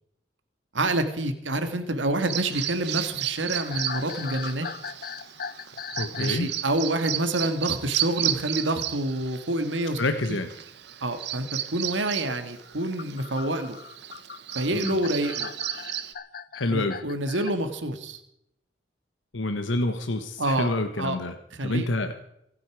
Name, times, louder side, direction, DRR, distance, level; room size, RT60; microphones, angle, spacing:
voice 1, 0.7-4.7 6.1-10.0 10.3-10.4 11.0-11.5 11.7-13.8 14.5-15.5 16.7-18.2 20.4-20.7 21.0-21.2 21.6-21.9, right 1 dB, 80° right, 8 dB, 1.9 m, -27 dB
Bird vocalization bird call bird song, 2.2-16.1, right 12 dB, 65° right, 1.1 m, -34 dB
sound 1, 3.6-6.5 6.7-7.0 9.2-9.4 10.7-10.8 12.7-17.5, left 6 dB, 50° left, 0.7 m, -39 dB
voice 2, 6.0-6.5 10.0-10.5 14.7-15.0 16.5-17.0 19.3-21.3 21.6-22.2, left 2 dB, 85° left, 8 dB, 1.2 m, -28 dB
25.5 x 9.6 x 4.8 m, 0.77 s
head